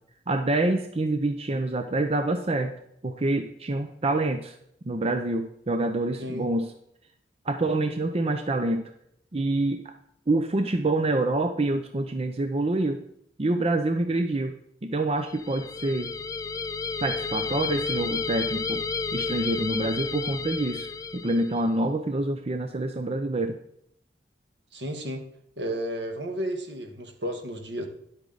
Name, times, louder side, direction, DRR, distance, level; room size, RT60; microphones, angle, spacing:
voice 1, 0.3-2.7 3.0-4.5 4.8-6.7 7.4-8.9 9.3-9.9 10.3-13.0 13.4-14.5 14.8-16.1 17.0-18.8 19.1-23.6, right 2 dB, 35° right, 7 dB, 0.6 m, -26 dB
sound 1, 15.3-21.6, left 4 dB, 20° left, 0.3 m, -31 dB
voice 2, 24.7-25.3 25.6-27.9, right 1 dB, 75° right, 5 dB, 1.6 m, -32 dB
10.5 x 8.2 x 4.0 m, 0.71 s
head